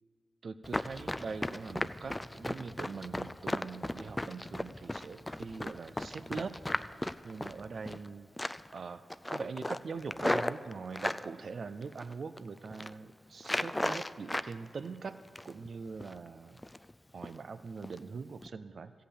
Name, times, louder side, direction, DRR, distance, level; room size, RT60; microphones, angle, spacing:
voice 1, 0.4-6.6 7.2-8.3 8.7-9.0 9.3-15.2 15.4-16.6 17.1-18.9, right 5 dB, 70° right, 12 dB, 0.4 m, -42 dB
Run, 0.6-8.1 8.4-8.8 9.1-11.2 11.8-12.4 12.7-12.9 13.4-14.5 14.9-15.7 16.0-16.2 16.6-16.9 17.2-17.4 17.8-18.0 18.4-18.5, left 1 dB, 20° left, 0.4 m, -36 dB
14.5 x 5.6 x 8.5 m, 2.1 s
cardioid pair, 40°, 0 cm